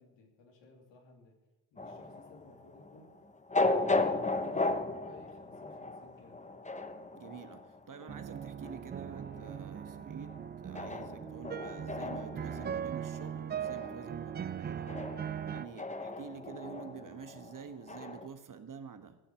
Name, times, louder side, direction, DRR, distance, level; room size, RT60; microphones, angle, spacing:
voice 1, 0.0-1.3 1.7-3.1 3.5-6.4, left 3 dB, 70° left, 2 dB, 2.9 m, -57 dB
sound 1, 1.8-18.3, left 2 dB, 15° left, 1.0 m, -36 dB
voice 2, 7.1-15.1 15.5-19.2, right 6 dB, 40° right, 9 dB, 1.3 m, -48 dB
sound 2, 8.1-15.6, right 8 dB, 25° right, 0.3 m, -40 dB
15.0 x 7.2 x 6.4 m, 1.0 s
supercardioid pair, 55°, 47 cm